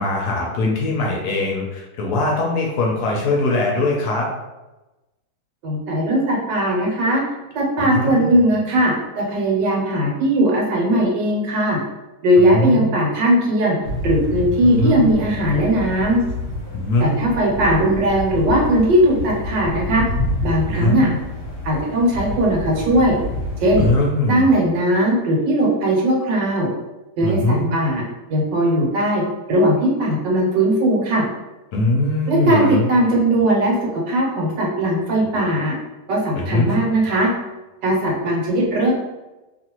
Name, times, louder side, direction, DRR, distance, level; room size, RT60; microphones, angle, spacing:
voice 1, 0.0-4.3 7.8-8.3 12.4-12.8 14.6-15.1 16.7-17.1 20.7-21.1 23.8-24.5 27.2-27.7 31.7-32.9 36.4-36.7, left 2 dB, 70° left, -1 dB, 1.0 m, -21 dB
voice 2, 5.6-7.2 7.5-11.8 12.2-13.8 14.0-16.2 17.0-20.0 20.4-21.1 21.6-23.2 23.6-23.9 24.3-26.7 27.2-28.0 28.3-29.2 29.5-31.2 32.3-35.8 36.1-37.3 37.8-38.9, right 1 dB, 75° right, -2 dB, 1.4 m, -18 dB
sound 1, 13.8-23.9, left 2 dB, 50° left, 1.0 m, -28 dB
3.0 x 2.5 x 2.9 m, 1.0 s
omnidirectional pair, 1.9 m